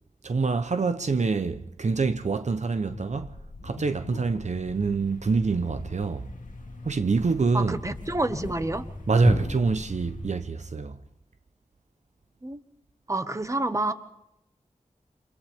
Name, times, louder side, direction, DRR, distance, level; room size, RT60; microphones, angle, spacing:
voice 1, 0.2-3.4 3.6-6.3 6.8-7.8 9.1-11.0, right 4 dB, 65° right, 0.7 m, -26 dB
sound 1, 2.9-4.8 5.1-5.2 5.5-6.0 6.4-8.5, left 3 dB, 65° left, 1.5 m, -44 dB
Thump thud, 4.4-10.6, left 2 dB, 90° left, 2.0 m, -37 dB
voice 2, 7.5-8.9 12.4-12.6 13.1-13.9, right 2 dB, 25° right, 1.2 m, -28 dB
29.0 x 26.0 x 3.6 m
wide cardioid pair, 70°, 13 cm